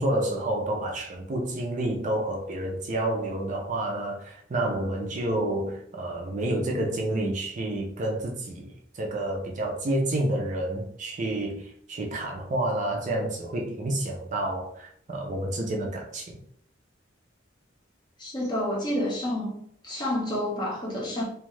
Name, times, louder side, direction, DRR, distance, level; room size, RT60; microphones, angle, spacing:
voice 1, 0.0-16.4, right 1 dB, 40° right, 1 dB, 0.4 m, -29 dB
voice 2, 18.2-19.6 19.8-21.2, left 1 dB, 25° left, -4 dB, 0.8 m, -29 dB
2.6 x 2.3 x 3.1 m, 0.65 s
head